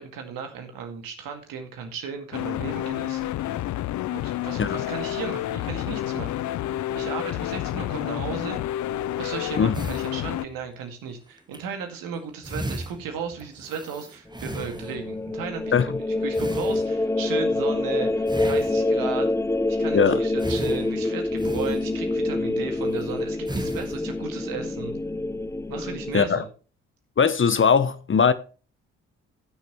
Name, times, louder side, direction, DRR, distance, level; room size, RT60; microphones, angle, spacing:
voice 1, 0.0-3.6 4.1-6.5 6.9-8.6 9.2-19.3 19.8-24.9 25.7-26.5, right 6 dB, 75° right, 2.2 m, -35 dB
sound 1, 2.3-10.5, left 13 dB, 55° left, 0.5 m, -29 dB
sound 2, 9.7-10.8 11.4-11.6 12.1-12.2 12.4-15.2 16.3-17.3 18.3-19.2 20.4-22.3 22.8-23.0 23.5-24.2, right 1 dB, 10° right, 1.4 m, -36 dB
sound 3, 14.3-26.3, left 2 dB, 10° left, 0.5 m, -26 dB
voice 2, 27.2-28.3, left 6 dB, 35° left, 0.9 m, -20 dB
16.5 x 6.5 x 3.1 m
hypercardioid pair, 45°, 34 cm